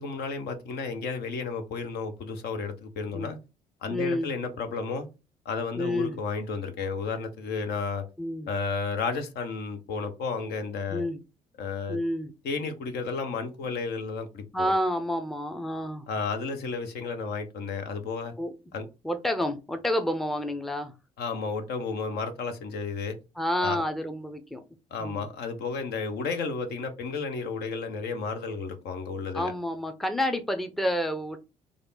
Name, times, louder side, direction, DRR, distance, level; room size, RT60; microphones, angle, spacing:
voice 1, 0.0-3.4 3.8-5.1 5.4-8.0 8.5-11.0 11.6-12.0 12.4-14.7 16.1-18.3 18.7-18.9 21.2-23.2 23.6-23.8 24.9-29.5, left 4 dB, 55° left, 0.8 m, -32 dB
voice 2, 3.9-4.3 5.8-6.2 8.2-8.5 10.9-11.2 11.9-12.3 14.5-16.1 18.4-18.5 19.0-20.9 23.4-24.6 25.0-25.2 29.3-31.4, left 1 dB, ahead, 0.5 m, -29 dB
3.3 x 2.4 x 3.9 m
figure-of-eight pair, 50°, 19 cm